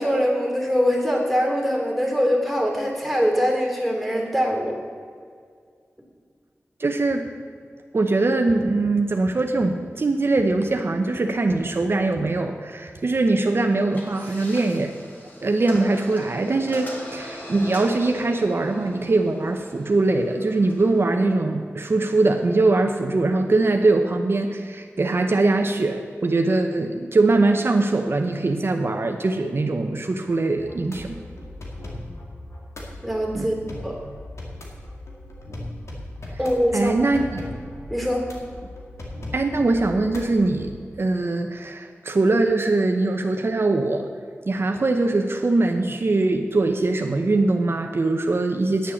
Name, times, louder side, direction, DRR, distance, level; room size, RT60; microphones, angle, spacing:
voice 1, 0.0-4.8 33.0-33.5 33.8-34.0 36.4-36.9 37.9-38.3, equal, ahead, 1 dB, 2.8 m, -22 dB
voice 2, 6.8-7.3 7.9-14.9 15.4-31.2 33.3-33.5 36.7-37.5 39.3-40.7 41.0-44.1 44.5-48.9, right 2 dB, 55° right, 4 dB, 0.8 m, -22 dB
sound 1, 13.9-21.0, left 1 dB, 40° left, 2.4 m, -41 dB
sound 2, 30.6-40.7, left 1 dB, 75° left, 2.1 m, -38 dB
10.5 x 7.4 x 7.1 m, 2.1 s
wide cardioid pair, 65°, 5 cm